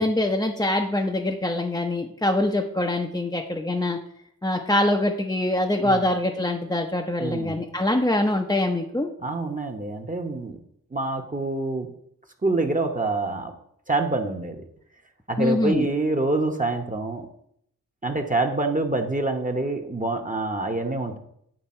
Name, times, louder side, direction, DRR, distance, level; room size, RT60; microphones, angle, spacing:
voice 1, 0.0-4.0 4.4-9.1 15.4-15.9, left 1 dB, 10° left, 1 dB, 0.7 m, -24 dB
voice 2, 7.2-7.6 9.2-10.6 10.9-11.9 12.4-13.5 13.9-14.6 15.3-17.3 18.0-21.2, right 2 dB, 20° right, 3 dB, 1.0 m, -26 dB
9.0 x 3.3 x 4.3 m, 0.71 s
supercardioid pair, 40°, 39 cm